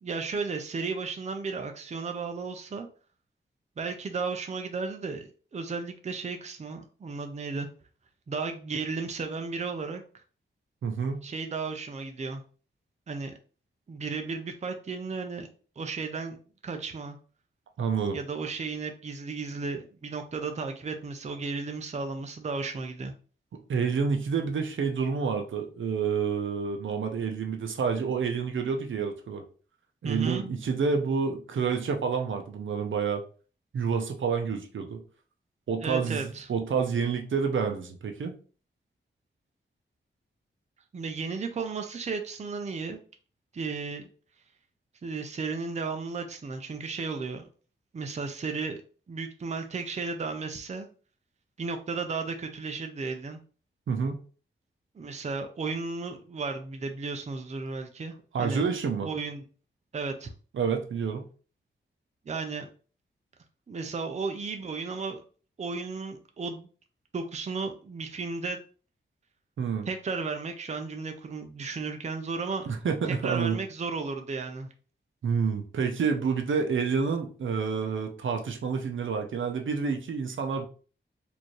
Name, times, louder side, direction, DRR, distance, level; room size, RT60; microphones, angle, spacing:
voice 1, 0.0-2.9 3.8-7.7 8.3-10.0 11.2-12.4 13.1-13.3 13.9-15.5 15.8-16.4 16.6-17.2 18.1-23.1 30.0-30.5 35.8-36.5 40.9-43.0 43.5-44.1 45.0-47.4 47.9-48.8 49.1-50.9 51.6-53.4 54.9-58.7 59.0-59.4 59.9-60.3 62.3-62.7 63.7-65.2 65.6-66.7 67.1-68.6 69.9-72.7 73.1-74.7, right 4 dB, 35° right, 5 dB, 0.5 m, -34 dB
voice 2, 10.8-11.2 17.8-18.2 23.5-29.4 30.0-33.2 33.7-35.0 35.7-38.4 53.9-54.2 58.3-59.1 60.5-61.2 69.6-69.9 72.7-73.6 75.2-80.7, right 5 dB, 80° right, 5 dB, 0.7 m, -28 dB
4.3 x 2.7 x 3.1 m, 0.39 s
wide cardioid pair, 135°, 20 cm